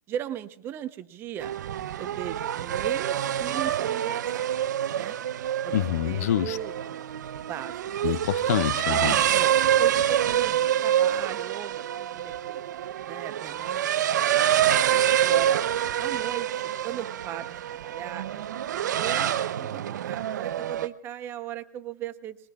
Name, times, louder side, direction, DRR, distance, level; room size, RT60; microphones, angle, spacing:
voice 1, 0.1-1.5 2.0-4.4 5.0-5.1 5.6-6.8 7.5-7.7 9.3-12.6 13.1-14.2 15.0-15.7 16.0-22.4, right 11 dB, 20° right, 0.8 m, -37 dB
sound 1, 1.4-20.9, right 10 dB, 70° right, 0.7 m, -26 dB
voice 2, 5.7-6.6 8.0-9.2, left 12 dB, 55° left, 0.5 m, -26 dB
26.0 x 21.0 x 2.4 m
hypercardioid pair, 155°, 10 cm